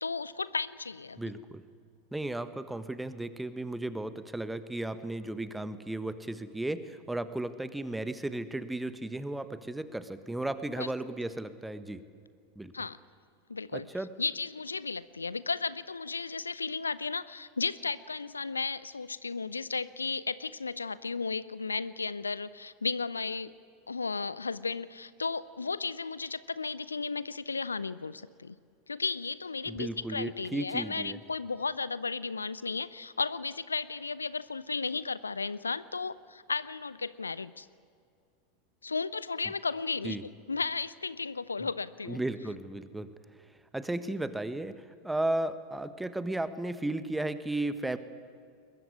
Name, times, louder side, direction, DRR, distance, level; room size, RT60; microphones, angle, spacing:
voice 1, 0.0-1.2 10.8-10.9 12.7-13.0 13.5-13.9 14.2-23.5 23.9-28.6 28.9-37.7 38.8-40.2 40.5-42.2, left 4 dB, 85° left, 19 dB, 0.6 m, -34 dB
voice 2, 1.2-1.6 2.1-12.0 12.5-12.7 13.7-14.1 29.7-31.2 40.0-40.2 42.1-43.1 43.7-48.0, right 2 dB, 5° right, 12 dB, 1.4 m, -34 dB
21.5 x 21.0 x 9.7 m, 2.3 s
figure-of-eight pair, 85°, 0 cm